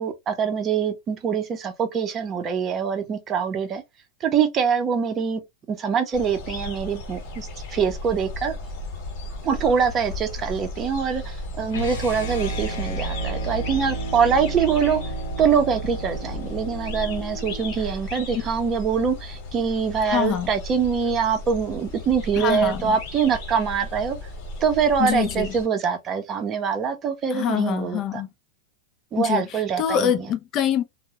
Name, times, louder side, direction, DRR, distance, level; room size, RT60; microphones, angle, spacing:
voice 1, 0.0-3.8 4.2-5.4 5.7-8.5 9.4-15.0 15.4-24.2 24.6-28.2 29.1-30.1, right 6 dB, 25° right, 0.6 m, -24 dB
sound 1, 6.1-25.7, left 2 dB, 55° left, 1.1 m, -35 dB
sound 2, 11.7-17.8, right 2 dB, 85° left, 0.7 m, -32 dB
voice 2, 20.1-20.5 22.3-23.0 25.0-25.5 27.3-28.3 29.2-30.8, left 9 dB, 35° left, 0.3 m, -25 dB
2.2 x 2.0 x 2.8 m
supercardioid pair, 140°, 0 cm